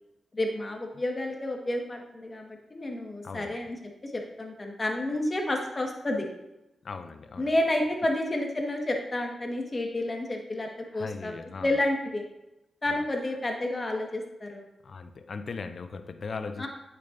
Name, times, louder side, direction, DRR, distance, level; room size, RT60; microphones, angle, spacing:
voice 1, 0.3-3.8 4.0-6.3 7.4-11.3 11.6-12.2 12.8-14.6 16.6-16.7, left 1 dB, 35° left, 2 dB, 1.6 m, -30 dB
voice 2, 3.2-3.6 6.8-7.6 10.9-11.7 12.9-13.3 14.8-16.7, left 4 dB, 60° left, 9 dB, 0.5 m, -39 dB
8.4 x 6.9 x 2.7 m, 0.93 s
cardioid pair, 50°, 0 cm